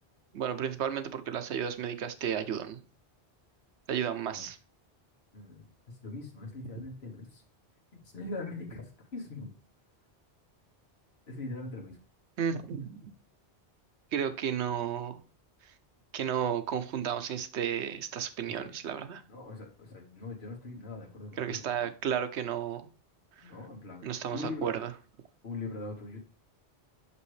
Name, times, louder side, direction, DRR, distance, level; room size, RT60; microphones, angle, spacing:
voice 1, 0.3-2.8 3.9-4.6 12.4-13.1 14.1-15.2 16.1-19.2 21.4-22.9 23.4-23.5 24.0-24.9, right 8 dB, 80° right, 11 dB, 1.0 m, -33 dB
voice 2, 5.3-5.7 6.0-7.4 8.0-9.5 11.3-12.0 18.4-18.7 19.3-21.9 23.4-24.7 25.4-26.2, left 3 dB, 70° left, 0 dB, 1.5 m, -41 dB
6.2 x 5.6 x 3.1 m, 0.35 s
omnidirectional pair, 1.1 m